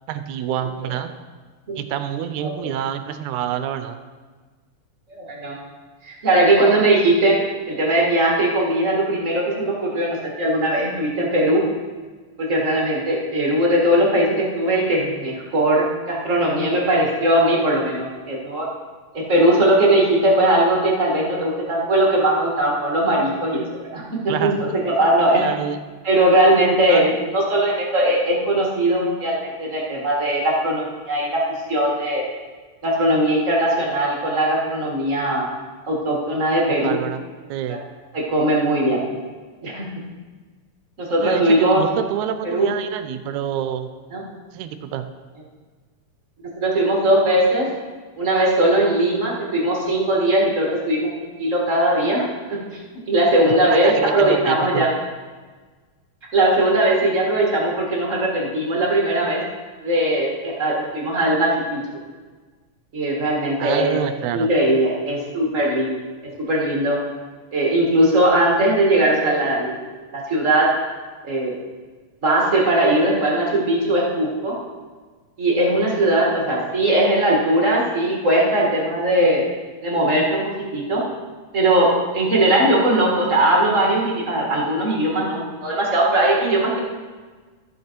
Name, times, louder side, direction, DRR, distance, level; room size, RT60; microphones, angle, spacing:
voice 1, 0.1-1.1 1.8-4.0 24.3-24.6 25.3-25.8 26.9-27.1 36.8-37.2 37.5-37.9 41.2-43.9 44.5-45.1 53.8-54.9 63.6-64.5, right 10 dB, 80° right, 10 dB, 1.8 m, -27 dB
voice 2, 5.1-5.6 6.0-7.4 7.7-11.6 12.4-18.6 19.1-23.6 23.9-24.5 24.8-25.4 26.0-31.4 31.7-32.2 32.8-35.5 35.8-37.0 37.7-37.8 38.1-39.0 39.6-39.9 41.0-41.8 42.4-42.7 44.1-44.2 46.6-47.7 48.2-52.6 53.1-54.9 56.3-59.4 59.8-61.8 62.9-64.0 64.3-67.0 67.5-69.8 70.1-70.7 71.2-71.5 72.2-74.5 75.4-79.4 79.8-81.0 81.5-86.8, right 1 dB, 40° right, -3 dB, 1.2 m, -19 dB
13.5 x 6.6 x 4.5 m, 1.4 s
omnidirectional pair, 3.8 m